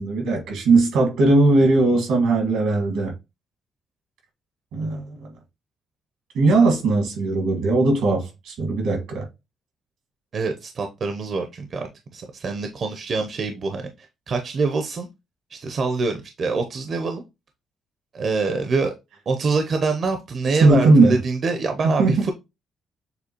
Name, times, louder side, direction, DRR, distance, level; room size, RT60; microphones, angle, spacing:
voice 1, 0.0-3.1 4.7-5.3 6.3-9.2 20.6-21.2 21.8-22.2, right 3 dB, 85° right, 1.7 m, -18 dB
voice 2, 10.3-13.8 14.3-15.1 15.5-17.2 18.1-18.9 19.3-22.3, right 4 dB, 50° right, 0.6 m, -25 dB
6.8 x 2.3 x 2.9 m
cardioid pair, 90°, 0 cm